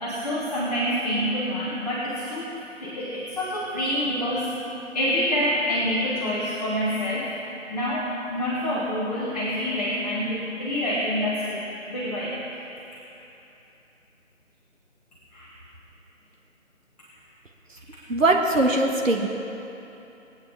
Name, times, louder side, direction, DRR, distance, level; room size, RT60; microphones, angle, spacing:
voice 1, 0.0-2.5 2.8-4.5 4.9-7.3 7.7-11.6 11.9-12.4 15.3-15.5, equal, 30° left, -8 dB, 1.9 m, -27 dB
voice 2, 18.1-19.3, right 2 dB, 75° right, 1 dB, 1.5 m, -21 dB
20.5 x 9.4 x 3.6 m, 3.0 s
figure-of-eight pair, 160°, 40 cm